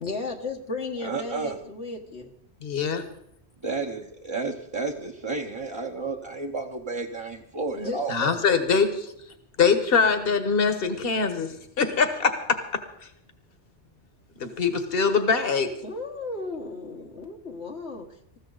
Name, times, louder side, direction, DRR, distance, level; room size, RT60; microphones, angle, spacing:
voice 1, 0.0-2.3 7.7-8.6 15.8-18.4, left 3 dB, 75° left, 1 dB, 1.7 m, -35 dB
voice 2, 1.0-1.6 3.6-8.2, right 3 dB, 25° right, 1 dB, 1.0 m, -31 dB
voice 3, 2.6-3.0 8.1-8.9 9.6-11.5 11.8-12.3 14.4-15.7, left 5 dB, 60° left, 8 dB, 1.6 m, -22 dB
20.0 x 15.0 x 4.0 m, 0.72 s
omnidirectional pair, 1.1 m